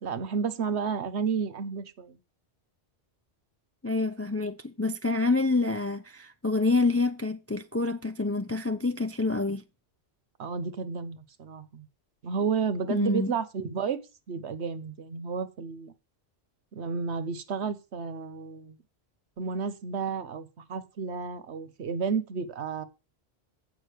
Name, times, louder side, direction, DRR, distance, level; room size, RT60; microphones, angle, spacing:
voice 1, 0.0-2.2 10.4-11.9 12.2-15.9 16.7-18.8 19.4-22.8, right 5 dB, 75° right, 1.2 m, -32 dB
voice 2, 3.8-9.6 12.9-13.3, left 3 dB, 20° left, 0.4 m, -27 dB
8.4 x 5.6 x 6.5 m
omnidirectional pair, 1.1 m